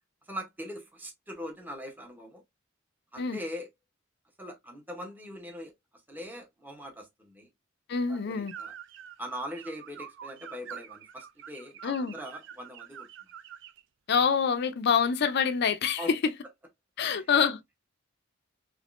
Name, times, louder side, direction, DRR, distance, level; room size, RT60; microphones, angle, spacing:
voice 1, 0.2-2.4 3.1-3.7 4.4-5.7 6.1-7.5 8.1-8.7 9.2-13.1 16.0-16.1 17.0-17.3, equal, 10° right, 0.7 m, -41 dB
voice 2, 7.9-8.5 11.8-12.1 14.1-16.2 17.0-17.8, left 6 dB, 55° left, 0.4 m, -26 dB
sound 1, 8.5-13.8, right 9 dB, 60° right, 0.4 m, -46 dB
3.4 x 3.1 x 2.4 m
head